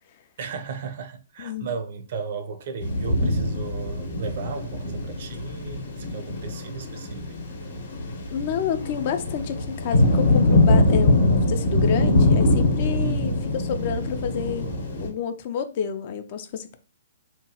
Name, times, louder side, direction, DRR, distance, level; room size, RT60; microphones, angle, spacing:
voice 1, 0.4-7.3 13.0-13.4, right 5 dB, 55° right, 0.5 m, -35 dB
voice 2, 1.4-1.7 8.3-14.7 15.0-16.8, left 8 dB, 45° left, 0.4 m, -29 dB
sound 1, 2.8-15.1, left 2 dB, 65° left, 0.8 m, -23 dB
2.9 x 2.2 x 2.8 m
hypercardioid pair, 130°, 0 cm